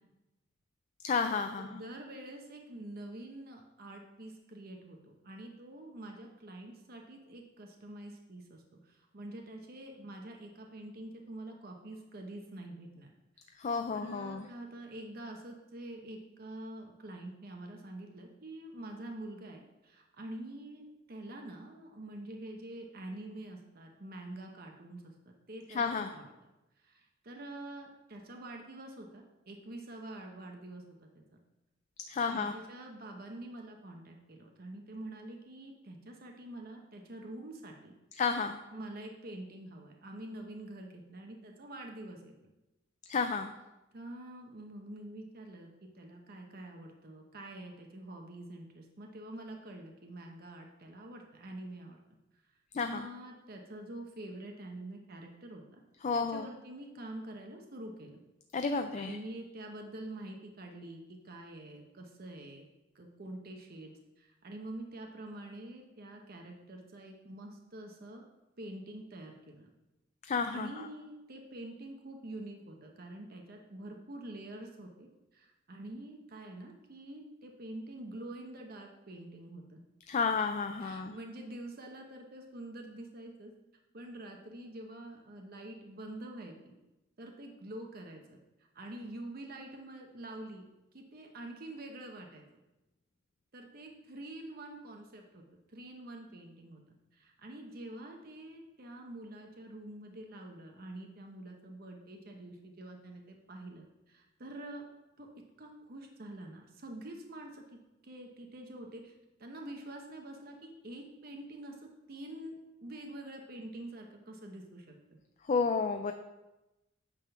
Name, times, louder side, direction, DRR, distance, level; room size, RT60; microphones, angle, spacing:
voice 1, 1.0-1.8 13.6-14.5 25.7-26.1 32.1-32.5 38.2-38.6 43.1-43.5 52.7-53.0 56.0-56.5 58.5-59.2 70.3-70.7 80.1-81.2 115.5-116.1, left 5 dB, 40° left, 7 dB, 0.4 m, -31 dB
voice 2, 1.6-13.1 13.9-25.1 25.5-26.3 26.8-31.2 32.3-37.9 38.7-42.5 43.9-52.0 52.9-55.8 56.1-58.2 59.0-62.7 62.9-68.2 68.6-69.7 70.5-79.8 80.8-83.5 83.9-86.7 87.2-90.6 90.9-92.4 93.5-95.4 95.7-96.8 97.1-104.8 105.2-105.3 105.6-107.6 108.0-109.1 109.4-115.2, right 1 dB, 50° right, 2 dB, 0.9 m, -46 dB
9.0 x 3.7 x 5.8 m, 1.0 s
head